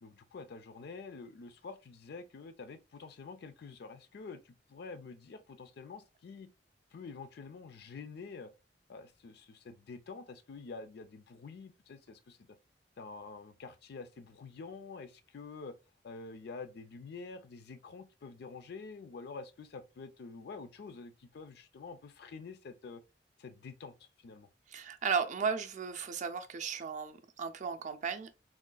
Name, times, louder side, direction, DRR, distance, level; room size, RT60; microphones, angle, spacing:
voice 1, 0.0-6.5 6.9-8.5 8.9-12.4 13.0-15.8 16.0-23.0 23.4-24.5, left 4 dB, 60° left, 0.4 m, -47 dB
voice 2, 24.7-28.3, right 6 dB, 45° right, 0.4 m, -35 dB
3.6 x 2.2 x 2.2 m
head